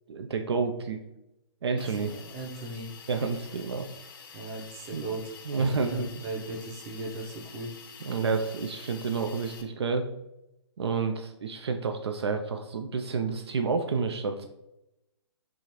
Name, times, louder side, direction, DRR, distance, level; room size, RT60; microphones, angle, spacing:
voice 1, 0.1-1.0 1.6-2.1 3.1-3.9 4.9-5.0 5.5-6.1 8.0-10.1 10.8-14.5, right 5 dB, 65° right, 6 dB, 0.4 m, -29 dB
Hiss, 1.8-9.6, left 6 dB, 50° left, 0.6 m, -48 dB
voice 2, 1.9-2.9 4.3-7.7, right 2 dB, 25° right, 1 dB, 0.7 m, -38 dB
4.8 x 2.5 x 2.9 m, 0.88 s
figure-of-eight pair, 130°, 15 cm